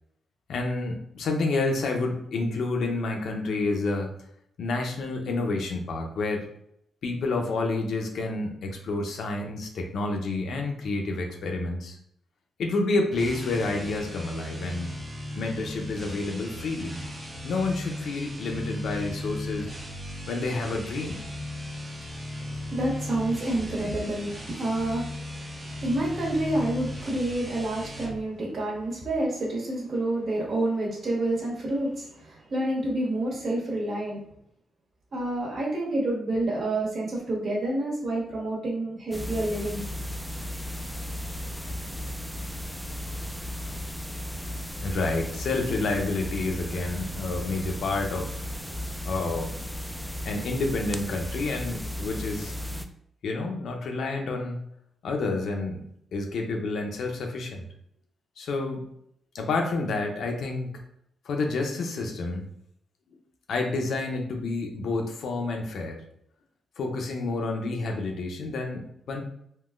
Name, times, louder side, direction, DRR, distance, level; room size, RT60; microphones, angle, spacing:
voice 1, 0.5-4.1 4.6-6.5 7.0-12.0 12.6-14.9 15.4-17.0 17.4-19.7 20.3-21.3 44.8-48.4 49.0-49.5 50.2-52.5 53.2-54.6 55.0-55.8 56.1-57.6 58.4-58.9 59.3-60.7 61.2-62.5 63.5-66.0 66.8-69.2, left 3 dB, 75° left, 2 dB, 0.6 m, -29 dB
sound 1, 13.1-28.2, left 1 dB, 25° right, 0.7 m, -37 dB
voice 2, 22.4-25.4 25.7-34.2 35.1-39.8, right 1 dB, 60° right, -4 dB, 1.3 m, -28 dB
sound 2, 39.1-52.9, equal, ahead, 0.3 m, -35 dB
3.7 x 2.3 x 2.4 m, 0.71 s
cardioid pair, 80°, 0 cm